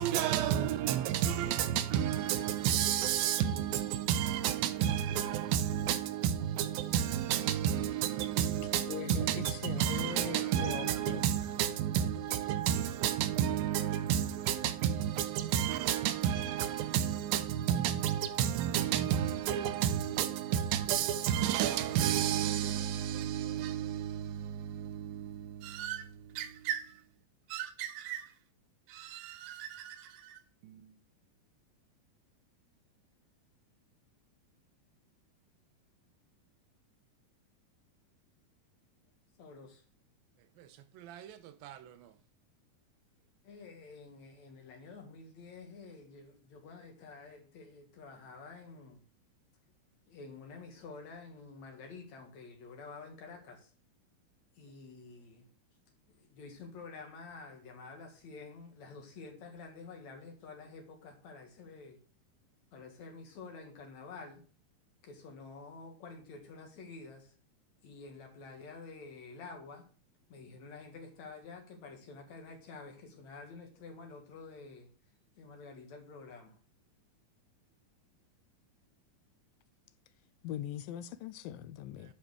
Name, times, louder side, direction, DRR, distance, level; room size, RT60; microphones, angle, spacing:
voice 1, 0.0-27.0 27.5-28.3 28.9-30.9 40.6-42.1, right 10 dB, 90° right, 2.5 m, -32 dB
voice 2, 8.8-11.2 80.4-82.1, left 11 dB, 85° left, 2.3 m, -41 dB
voice 3, 39.4-39.8 43.4-49.0 50.1-53.7 54.6-55.5 56.1-62.0 62.7-64.4 65.0-67.3 67.8-69.9 70.3-74.9 75.4-76.5, left 4 dB, 55° left, 3.0 m, -49 dB
8.9 x 5.4 x 6.6 m
omnidirectional pair, 4.1 m